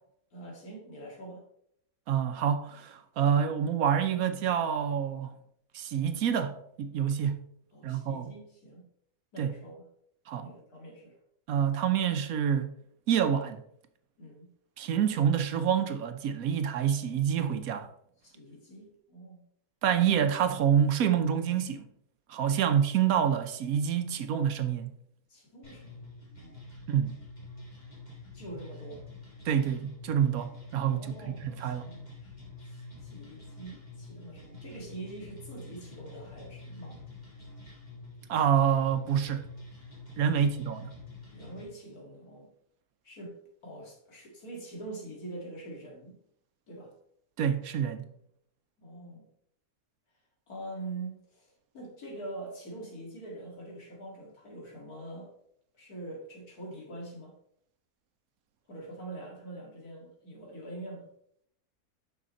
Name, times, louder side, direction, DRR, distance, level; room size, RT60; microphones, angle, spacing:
voice 1, 0.3-1.4 7.7-8.8 9.3-9.8 10.4-11.2 14.2-14.5 18.2-19.4 25.3-26.0 26.4-26.7 28.3-29.0 30.9-32.3 32.6-37.0 40.3-40.5 41.3-42.5 43.0-43.3 43.6-46.2 46.7-46.9 48.8-49.3 50.5-55.3 55.7-57.3 58.7-61.1, right 2 dB, 75° left, 2.6 m, -44 dB
voice 2, 2.1-5.3 5.7-7.4 7.8-8.3 9.4-9.5 10.3-10.5 11.5-12.7 13.1-13.6 14.8-17.9 19.8-21.9 22.3-24.9 26.9-27.2 29.4-31.9 38.3-39.5 40.2-40.9 47.4-48.1, right 8 dB, 70° right, 1.1 m, -27 dB
sound 1, 25.6-41.6, left 2 dB, 30° left, 2.3 m, -47 dB
6.2 x 6.1 x 4.1 m
omnidirectional pair, 1.6 m